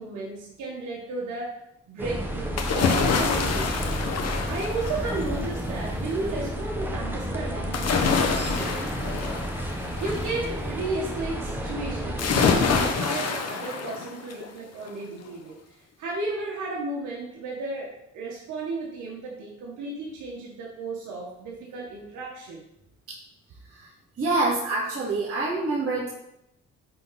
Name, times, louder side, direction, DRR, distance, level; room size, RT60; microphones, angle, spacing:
voice 1, 0.0-3.9 4.4-8.9 10.0-15.6 16.0-22.6, right 2 dB, 80° right, -3 dB, 1.8 m, -34 dB
sound 1, 2.0-12.9, equal, 5° right, 1.3 m, -31 dB
sound 2, 2.6-5.4 7.7-10.4 12.2-14.5 14.9-15.0, left 5 dB, 55° left, 1.2 m, -26 dB
voice 2, 24.2-26.1, right 3 dB, 50° right, -7 dB, 2.7 m, -25 dB
10.5 x 4.1 x 4.3 m, 0.81 s
cardioid pair, 90°, 30 cm